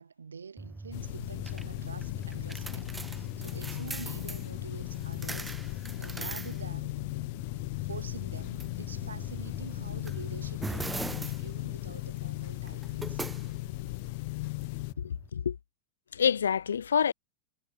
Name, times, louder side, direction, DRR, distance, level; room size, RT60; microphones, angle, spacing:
voice 1, 0.0-7.0 7.8-13.2, right 5 dB, 75° right, 4.3 m, -47 dB
sound 1, 0.6-15.3, right 3 dB, 10° right, 1.4 m, -42 dB
sound 2, 0.9-14.9, left 24 dB, 50° left, 0.3 m, -37 dB
voice 2, 15.0-15.6 16.1-17.1, left 7 dB, 70° left, 1.2 m, -27 dB
figure-of-eight pair, 90°, 0 cm